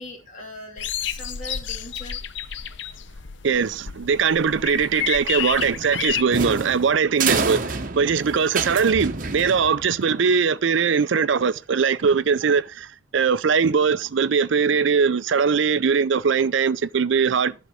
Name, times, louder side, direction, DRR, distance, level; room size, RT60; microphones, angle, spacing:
voice 1, 0.0-2.2, left 1 dB, 40° left, 2.8 m, -40 dB
sound 1, 0.8-6.2, left 9 dB, 65° left, 0.7 m, -30 dB
voice 2, 3.4-17.5, right 6 dB, 70° right, 0.5 m, -21 dB
sound 2, 5.6-10.0, right 4 dB, 45° right, 0.9 m, -28 dB
11.5 x 3.9 x 6.3 m
head